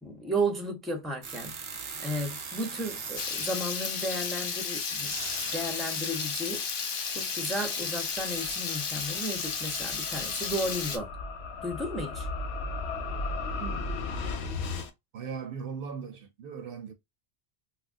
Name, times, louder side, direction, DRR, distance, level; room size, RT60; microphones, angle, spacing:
voice 1, 0.0-1.5 2.0-5.1 5.5-6.6 7.1-11.1 11.6-12.3, right 1 dB, ahead, 0.7 m, -33 dB
sound 1, 1.2-3.6 4.8-6.2 7.8-7.9 8.2-8.5, right 5 dB, 45° right, 0.4 m, -41 dB
Water tap faucet / Liquid, 3.2-11.0, left 5 dB, 60° left, 0.8 m, -33 dB
sound 2, 7.1-14.9, left 3 dB, 85° left, 0.9 m, -36 dB
voice 2, 13.6-13.9 15.1-16.9, right 6 dB, 65° right, 0.8 m, -38 dB
3.3 x 2.4 x 2.4 m
omnidirectional pair, 1.1 m